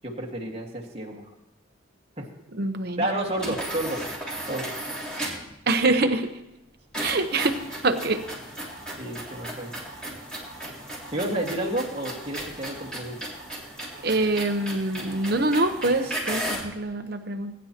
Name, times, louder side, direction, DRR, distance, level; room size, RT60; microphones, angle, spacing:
voice 1, 0.0-1.2 2.2-2.3 3.0-4.0 4.5-4.7 9.0-9.7 11.1-13.3, right 1 dB, 30° right, -1 dB, 1.8 m, -30 dB
voice 2, 2.6-3.0 5.7-6.3 7.0-7.6 7.8-8.2 14.0-17.5, right 2 dB, 50° right, 7 dB, 0.9 m, -25 dB
sound 1, 3.3-5.5 6.9-16.7, right 1 dB, 5° left, 3.4 m, -35 dB
20.5 x 10.5 x 2.9 m, 0.89 s
head